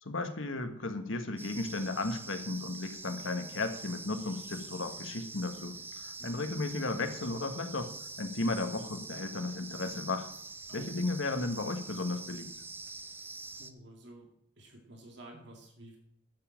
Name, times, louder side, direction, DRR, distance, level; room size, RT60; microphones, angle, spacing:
voice 1, 0.0-5.8 6.0-7.9 8.2-10.3 10.7-12.5, left 2 dB, 85° left, 7 dB, 1.5 m, -34 dB
sound 1, 1.4-13.7, right 3 dB, 10° right, 0.5 m, -45 dB
voice 2, 13.5-14.3 14.6-16.0, right 1 dB, 65° right, 2 dB, 2.3 m, -51 dB
11.0 x 7.3 x 7.5 m, 0.72 s
head